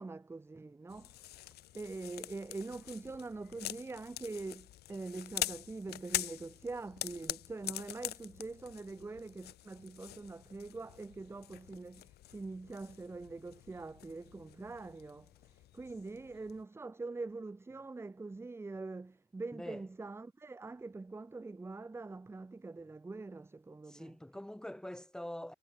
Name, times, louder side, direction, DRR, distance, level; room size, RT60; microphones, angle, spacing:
voice 1, 0.0-24.2, right 3 dB, 15° right, 1.1 m, -44 dB
sound 1, 0.9-16.6, left 15 dB, 70° left, 1.6 m, -45 dB
voice 2, 23.9-25.5, left 1 dB, 5° left, 3.5 m, -44 dB
cardioid pair, 110°, 17 cm